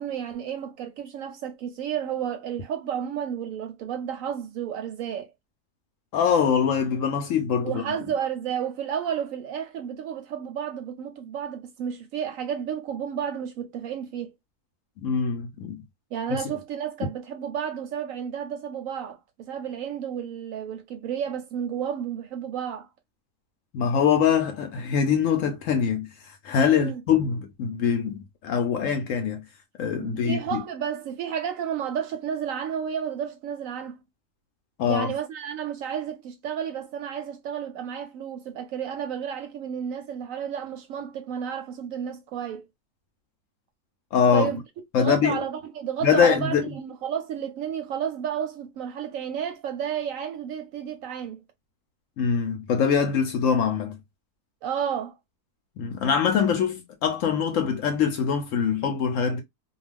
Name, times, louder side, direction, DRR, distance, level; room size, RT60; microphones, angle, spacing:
voice 1, 0.0-5.3 7.6-14.3 16.1-22.9 26.7-27.0 30.0-34.0 34.9-42.6 44.3-44.6 45.0-51.4 54.6-55.1, right 8 dB, 70° right, 0.9 m, -32 dB
voice 2, 6.1-7.8 15.0-15.8 16.3-16.4 23.7-26.1 26.4-29.4 29.8-30.6 34.8-35.1 44.1-44.5 44.9-45.4 46.0-46.7 52.2-54.0 55.8-59.4, left 7 dB, 70° left, 0.8 m, -23 dB
2.4 x 2.3 x 3.2 m
omnidirectional pair, 1.6 m